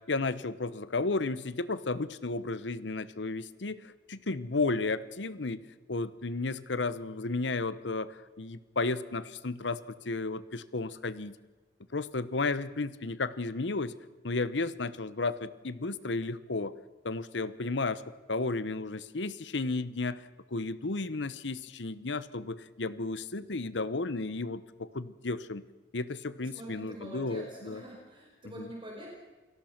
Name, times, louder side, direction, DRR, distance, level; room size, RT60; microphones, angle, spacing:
voice 1, 0.0-5.6 5.9-11.3 11.9-14.0 14.2-16.8 17.0-18.0 18.3-20.2 20.5-25.6 25.9-27.8 28.6-28.7, left 3 dB, 75° left, 16 dB, 1.0 m, -33 dB
voice 2, 26.4-29.1, right 1 dB, 30° right, -1 dB, 5.1 m, -45 dB
28.0 x 18.5 x 6.0 m, 1.2 s
head